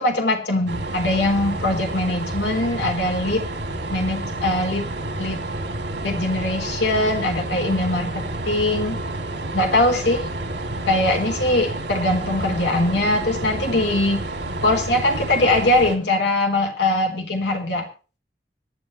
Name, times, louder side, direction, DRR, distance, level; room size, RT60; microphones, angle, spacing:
voice 1, 0.0-3.5 3.9-4.9 5.2-5.4 6.0-9.0 9.5-10.2 10.9-14.3 14.6-17.9, left 1 dB, 80° left, 3 dB, 3.7 m, -21 dB
sound 1, 0.7-16.0, right 2 dB, 90° right, 3.1 m, -29 dB
25.0 x 9.7 x 3.2 m, 0.35 s
head